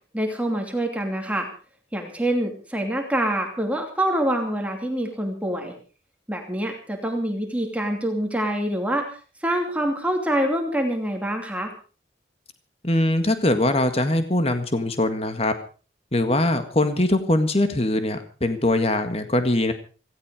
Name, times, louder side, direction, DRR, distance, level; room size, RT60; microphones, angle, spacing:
voice 1, 0.1-1.5 1.9-5.8 6.3-9.1 9.4-11.7, right 1 dB, 5° right, 3 dB, 2.7 m, -25 dB
voice 2, 12.8-15.5 16.1-19.7, left 1 dB, 35° left, 8 dB, 1.8 m, -22 dB
17.0 x 16.5 x 4.9 m, 0.37 s
head